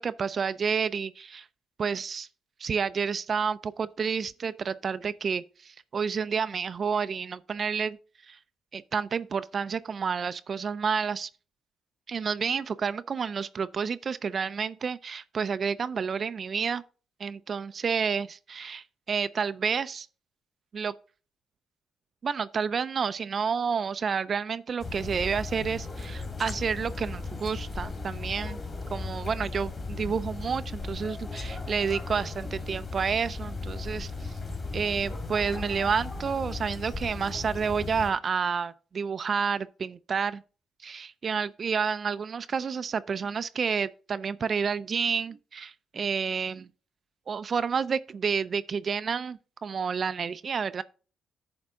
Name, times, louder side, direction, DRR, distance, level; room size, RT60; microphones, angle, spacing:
voice 1, 0.0-1.5 1.8-2.3 2.6-8.0 8.3-8.4 8.7-11.3 12.1-16.8 17.2-20.1 20.7-20.9 22.2-28.6 28.9-34.4 34.7-40.4 40.8-46.7 47.3-50.8, right 6 dB, 45° right, 0.4 m, -30 dB
sound 1, 24.8-38.1, left 3 dB, 35° left, 2.2 m, -36 dB
9.5 x 3.6 x 6.1 m
cardioid pair, 90°, 0 cm